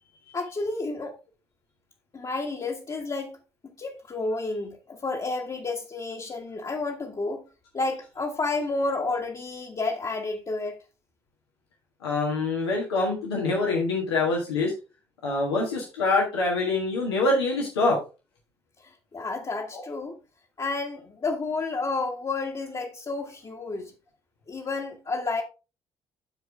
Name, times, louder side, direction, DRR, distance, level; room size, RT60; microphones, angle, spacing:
voice 1, 0.3-1.1 2.1-3.4 3.8-7.4 7.7-10.8 18.8-20.2 20.6-23.9 24.5-25.4, left 3 dB, 30° left, 1.6 m, -31 dB
voice 2, 12.0-14.7 15.2-18.0 19.7-19.8, left 3 dB, 80° left, 1.6 m, -25 dB
12.5 x 4.7 x 3.5 m
figure-of-eight pair, 45°, 13 cm